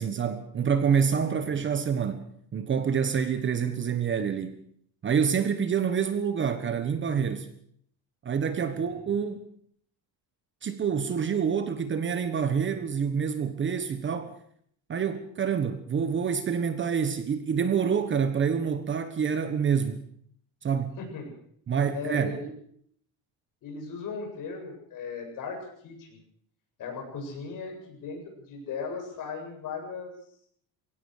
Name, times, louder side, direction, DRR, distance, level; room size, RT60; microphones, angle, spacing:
voice 1, 0.0-2.2 2.5-4.6 5.0-7.5 8.2-9.4 10.6-14.3 14.9-20.0 20.6-21.0 21.7-22.4, right 7 dB, 30° right, 10 dB, 1.3 m, -27 dB
voice 2, 8.6-9.0 21.0-21.3 21.9-22.5 23.6-26.2 26.8-30.1, left 5 dB, 50° left, 2 dB, 7.8 m, -37 dB
22.5 x 17.5 x 6.6 m, 0.64 s
cardioid pair, 165°, 41 cm